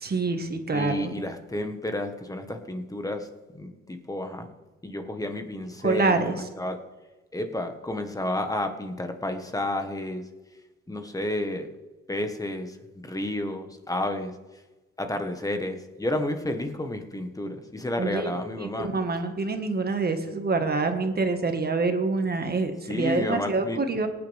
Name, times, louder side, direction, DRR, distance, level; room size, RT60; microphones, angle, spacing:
voice 1, 0.0-1.2 5.8-6.3 18.0-24.1, right 3 dB, 30° right, 6 dB, 1.7 m, -26 dB
voice 2, 0.7-3.3 3.5-4.5 4.8-6.8 7.3-10.2 10.9-11.7 12.1-12.8 13.0-14.3 15.0-18.9 22.9-23.8, left 1 dB, 10° left, 6 dB, 1.5 m, -31 dB
18.5 x 9.7 x 3.6 m, 1.1 s
cardioid pair, 90°, 30 cm